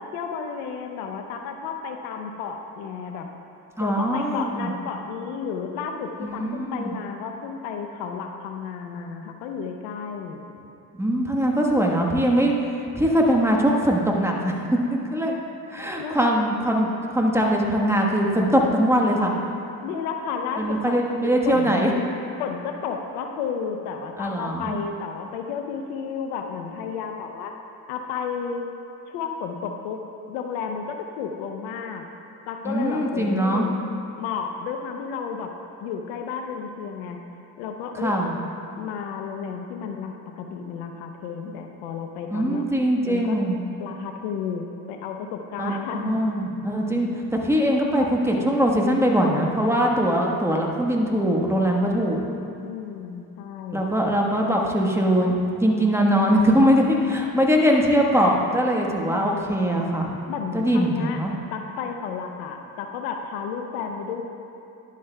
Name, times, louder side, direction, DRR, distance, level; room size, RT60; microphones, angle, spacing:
voice 1, 0.0-3.3 3.8-10.5 16.0-16.3 19.8-21.0 21.2-21.8 22.4-27.5 27.9-28.7 29.1-30.0 30.3-32.0 32.5-33.7 34.2-35.5 35.8-37.2 37.6-38.2 38.8-42.7 43.0-43.4 43.8-46.2 52.6-53.8 58.9-59.5 60.3-61.2 61.5-64.2, left 6 dB, 80° left, 4 dB, 0.7 m, -32 dB
voice 2, 3.8-4.7 6.2-6.9 11.0-12.5 13.0-14.5 14.9-15.4 15.7-19.3 20.6-21.9 24.2-24.8 32.6-33.7 38.0-38.3 41.5-41.6 42.3-43.6 45.6-47.1 47.4-52.2 53.7-60.1 60.5-61.3, equal, 5° right, -1 dB, 1.2 m, -21 dB
11.0 x 8.3 x 2.2 m, 2.7 s
hypercardioid pair, 60°, 44 cm